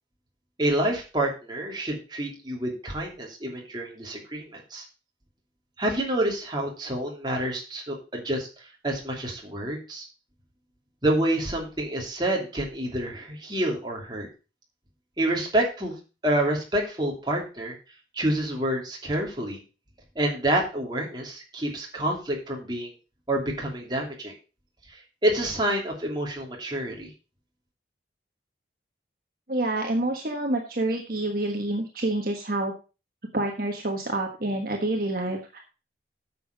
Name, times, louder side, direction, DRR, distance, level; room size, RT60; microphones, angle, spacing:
voice 1, 0.6-4.8 5.8-8.5 8.8-10.1 11.0-14.3 15.2-15.9 16.2-17.7 18.1-19.6 20.1-22.9 23.3-24.3 24.9-27.1, right 1 dB, 25° right, -1 dB, 2.8 m, -28 dB
voice 2, 29.5-32.7 33.3-35.6, right 2 dB, 50° right, 2 dB, 1.4 m, -28 dB
9.5 x 7.1 x 5.2 m, 0.32 s
head